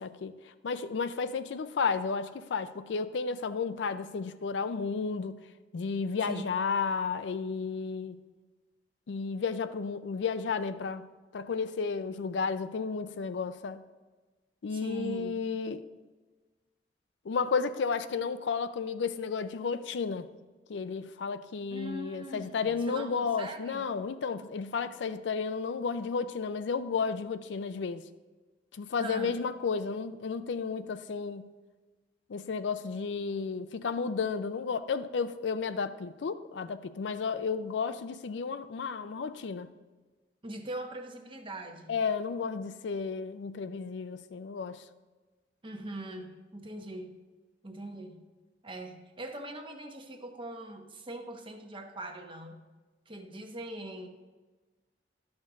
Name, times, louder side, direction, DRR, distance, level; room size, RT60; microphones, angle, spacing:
voice 1, 0.0-5.4 5.7-8.2 9.1-11.1 11.3-13.8 14.6-15.8 17.2-20.3 20.7-28.0 28.7-31.5 32.3-39.7 41.9-44.8, left 5 dB, 85° left, 12 dB, 0.4 m, -32 dB
voice 2, 14.7-15.4 21.7-23.9 28.9-29.3 40.4-42.0 45.6-47.2 47.6-48.2 48.6-52.6 53.1-54.1, right 1 dB, 30° right, 4 dB, 0.9 m, -41 dB
11.5 x 6.4 x 3.6 m, 1.3 s
head